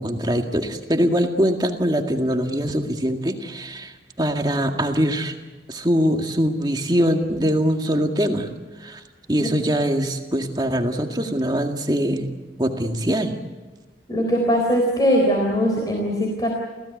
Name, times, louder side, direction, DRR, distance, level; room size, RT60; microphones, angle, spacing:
voice 1, 0.0-5.3 5.7-8.5 8.8-9.0 9.3-12.3 12.6-13.4, equal, 25° right, 4 dB, 2.0 m, -22 dB
voice 2, 14.1-16.5, equal, 20° left, 0 dB, 4.0 m, -20 dB
29.0 x 17.0 x 9.6 m, 1.2 s
head